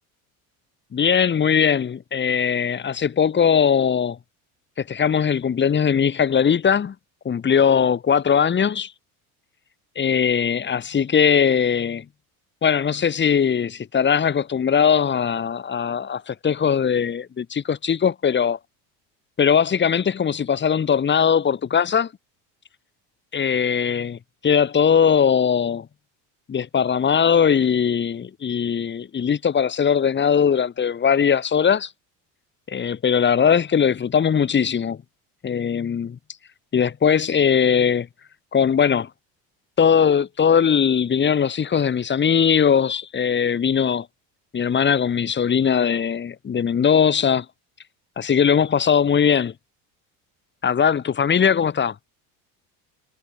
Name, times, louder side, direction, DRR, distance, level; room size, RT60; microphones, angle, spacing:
voice 1, 0.9-4.2 4.8-6.9 7.2-8.9 10.0-12.0 12.6-18.6 19.4-22.1 23.3-25.9 26.5-31.9 32.7-35.0 35.4-36.2 36.7-38.1 38.5-39.1 39.8-44.1 44.5-47.4 48.2-49.5 50.6-51.9, left 7 dB, 25° left, 4.7 m, -20 dB
cardioid pair, 135°, 39 cm